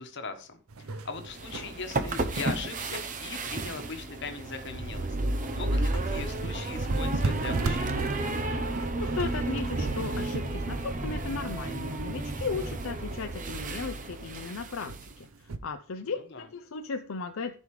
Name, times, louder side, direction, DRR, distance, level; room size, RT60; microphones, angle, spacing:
voice 1, 0.0-8.0 16.3-16.5, left 4 dB, 55° left, 6 dB, 1.3 m, -40 dB
sound 1, 0.7-15.6, right 3 dB, 80° right, 0.7 m, -38 dB
sound 2, 1.2-15.1, right 2 dB, 35° right, 0.8 m, -32 dB
Singing, 4.1-8.0 8.3-8.4, right 1 dB, 15° right, 1.6 m, -55 dB
voice 2, 8.9-17.5, left 4 dB, 75° left, 7 dB, 0.6 m, -36 dB
14.5 x 5.4 x 3.2 m, 0.40 s
head